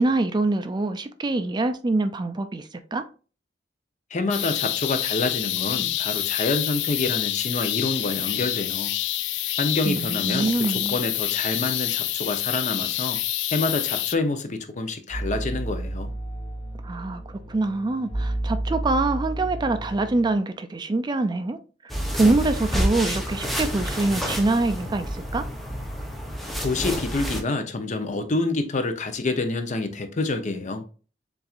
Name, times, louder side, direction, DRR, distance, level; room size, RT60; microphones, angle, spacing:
voice 1, 0.0-3.0 9.8-11.0 16.8-21.6 21.8-21.9 22.2-25.5, right 2 dB, 25° right, 0.4 m, -25 dB
voice 2, 4.1-8.9 9.6-13.2 13.5-16.1 26.6-30.8, left 3 dB, 45° left, 0.7 m, -27 dB
sound 1, 4.3-14.2, left 14 dB, 85° left, 0.4 m, -27 dB
sound 2, 15.1-20.4, right 1 dB, 25° left, 1.3 m, -31 dB
sound 3, 21.9-27.4, equal, ahead, 0.7 m, -29 dB
7.0 x 2.6 x 2.4 m
head